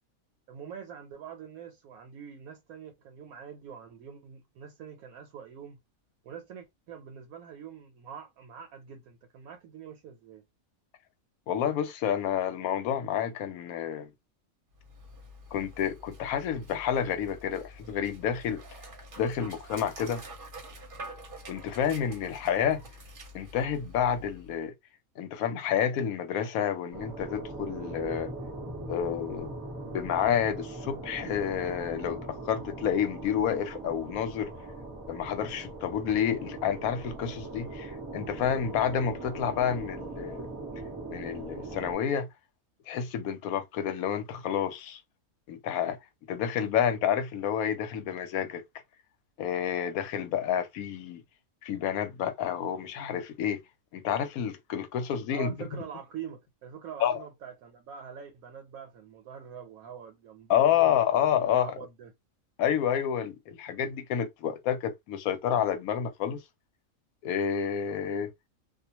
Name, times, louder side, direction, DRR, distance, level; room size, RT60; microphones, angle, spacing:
voice 1, 0.5-5.8 6.2-10.4 55.3-61.0 61.4-62.1, right 8 dB, 85° right, 1.1 m, -44 dB
voice 2, 11.5-14.1 15.5-18.6 19.2-20.2 21.5-22.8 23.3-24.7 25.2-28.3 28.9-29.5 29.9-34.5 35.1-40.5 41.1-42.3 42.9-45.0 45.5-46.0 46.3-48.6 49.4-51.2 51.6-53.6 53.9-55.6 57.0-57.2 60.5-61.7 62.6-66.4 67.2-68.3, left 9 dB, 85° left, 1.0 m, -29 dB
Dog, 14.7-24.7, right 1 dB, 50° right, 0.7 m, -47 dB
sound 1, 26.9-41.9, right 2 dB, ahead, 0.9 m, -40 dB
2.4 x 2.2 x 2.8 m
omnidirectional pair, 1.5 m